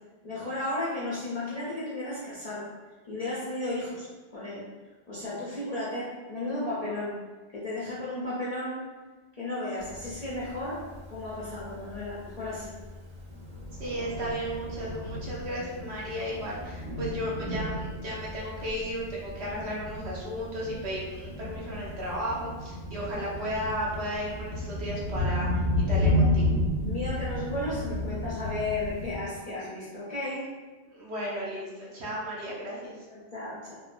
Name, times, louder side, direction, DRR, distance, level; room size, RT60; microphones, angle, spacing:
voice 1, 0.2-2.7 3.1-4.1 4.3-4.7 5.1-7.2 7.5-8.8 9.3-12.7 19.5-19.6 25.9-26.4 26.8-30.5 33.1-33.8, left 2 dB, 55° left, -8 dB, 0.4 m, -34 dB
Thunder, 9.8-29.1, left 1 dB, 85° right, 1.0 m, -33 dB
voice 2, 13.8-26.5 30.9-33.0, equal, 65° right, -4 dB, 0.9 m, -34 dB
3.0 x 2.1 x 2.4 m, 1.3 s
omnidirectional pair, 1.3 m